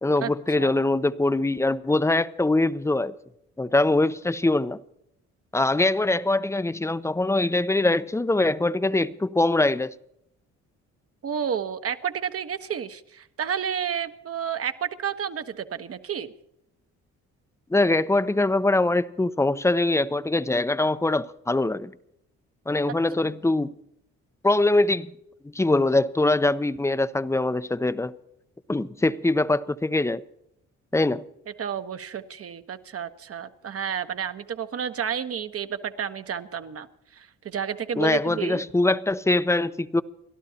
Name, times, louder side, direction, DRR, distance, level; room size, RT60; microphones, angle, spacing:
voice 1, 0.0-3.1 3.6-4.8 5.5-9.9 17.7-21.9 22.7-23.7 24.4-25.1 25.4-28.1 28.7-30.2 30.9-31.2 38.0-40.0, left 2 dB, 10° left, 0.6 m, -23 dB
voice 2, 11.2-16.3 31.6-36.9 37.1-38.6, right 8 dB, 50° right, 1.2 m, -31 dB
30.0 x 12.5 x 2.8 m
cardioid pair, 90°, 30 cm